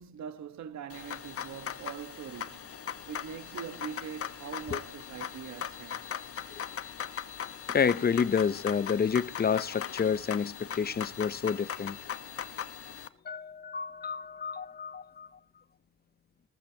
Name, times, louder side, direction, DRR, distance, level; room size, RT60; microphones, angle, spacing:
voice 1, 0.0-2.6 3.1-6.1, right 8 dB, 65° right, 1.3 m, -42 dB
sound 1, 0.9-13.1, left 8 dB, 50° left, 1.2 m, -39 dB
voice 2, 7.7-12.0 13.3-15.3, left 6 dB, 30° left, 0.7 m, -29 dB
20.0 x 14.5 x 2.9 m
cardioid pair, 90°, 30 cm